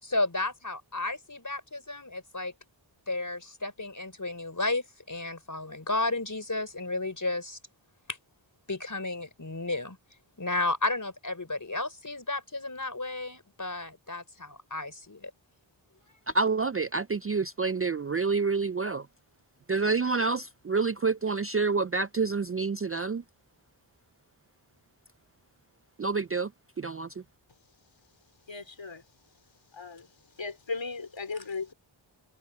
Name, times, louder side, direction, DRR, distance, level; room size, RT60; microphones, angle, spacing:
voice 1, 0.0-2.5 3.1-7.6 8.7-10.0 10.4-15.3, left 2 dB, 40° left, 4.7 m, -33 dB
voice 2, 16.3-19.1 19.7-23.2 26.0-26.5 26.8-27.1, right 4 dB, 30° right, 0.4 m, -28 dB
voice 3, 28.5-29.0 29.7-30.1 30.4-31.7, left 4 dB, 70° left, 2.7 m, -36 dB
open air
wide cardioid pair, 55°, 47 cm